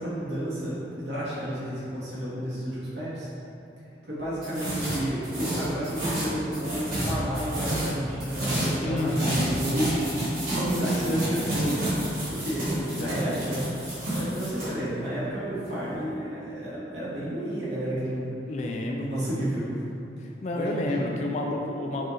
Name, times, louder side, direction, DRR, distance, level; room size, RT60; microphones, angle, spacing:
voice 1, 0.0-3.3 4.0-12.0 12.3-13.6 14.1-18.3 19.0-19.7 20.5-21.3, right 1 dB, 70° right, -9 dB, 1.4 m, -31 dB
sound 1, 4.4-14.7, right 1 dB, 50° right, 1.4 m, -30 dB
voice 2, 8.8-9.6 10.8-11.3 12.7-13.2 18.5-19.3 20.4-22.1, left 2 dB, 40° left, 1 dB, 0.3 m, -30 dB
5.4 x 2.5 x 3.1 m, 2.7 s
head